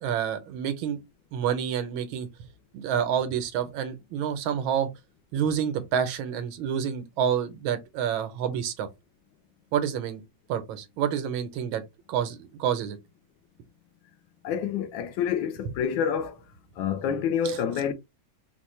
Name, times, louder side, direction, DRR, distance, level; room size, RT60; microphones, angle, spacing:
voice 1, 0.0-1.0 1.3-2.3 2.7-4.9 5.3-8.9 9.7-10.2 10.5-11.8 12.1-13.0 17.4-17.6, right 8 dB, 85° right, 1.5 m, -28 dB
voice 2, 14.4-16.4 16.8-17.9, left 8 dB, 75° left, 1.3 m, -27 dB
4.2 x 2.1 x 3.0 m
omnidirectional pair, 2.2 m